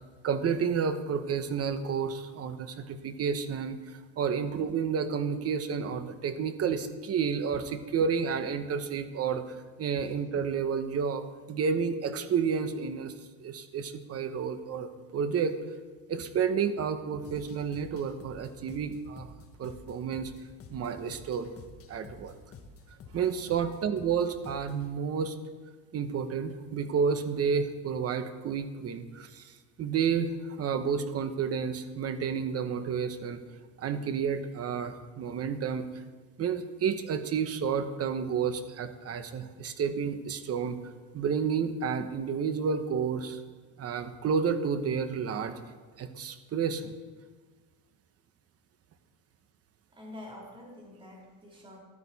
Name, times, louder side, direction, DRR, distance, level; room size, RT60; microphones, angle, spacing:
voice 1, 0.2-13.1 13.4-15.6 16.1-19.3 19.6-20.3 20.7-21.5 21.9-22.4 23.1-25.4 25.9-29.5 29.8-33.4 33.8-35.9 36.4-40.8 41.1-43.4 43.8-45.6 46.0-46.9, right 6 dB, 35° right, 10 dB, 1.0 m, -30 dB
sound 1, 17.2-24.9, left 4 dB, 35° left, 1.2 m, -50 dB
voice 2, 49.9-51.8, left 1 dB, 10° right, -3 dB, 3.1 m, -47 dB
14.5 x 12.5 x 4.1 m, 1.4 s
cardioid pair, 140°, 41 cm